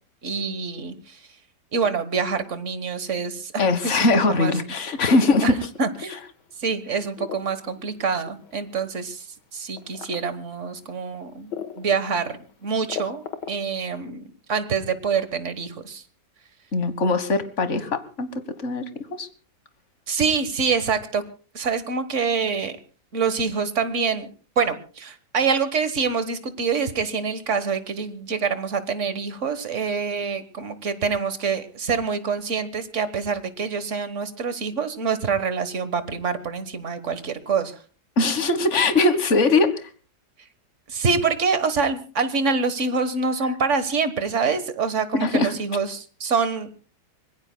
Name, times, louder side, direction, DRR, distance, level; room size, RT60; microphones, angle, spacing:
voice 1, 0.2-1.2 1.7-4.5 5.4-5.5 5.8-6.2 6.6-9.2 9.5-16.0 20.1-21.2 21.5-22.8 23.1-24.3 24.6-37.8 40.9-46.7, right 5 dB, 45° right, 12 dB, 1.6 m, -26 dB
voice 2, 3.6-5.6 16.7-18.3 18.6-18.9 19.2-19.3 38.2-39.9 45.2-45.5, left 3 dB, 45° left, 12 dB, 1.7 m, -21 dB
sound 1, 4.9-6.3 6.7-8.9 9.8-10.2 10.7-10.8 11.5-11.9 12.3-12.4 12.6-13.7, left 8 dB, 75° left, 2.0 m, -34 dB
25.5 x 20.5 x 2.3 m, 0.38 s
omnidirectional pair, 1.9 m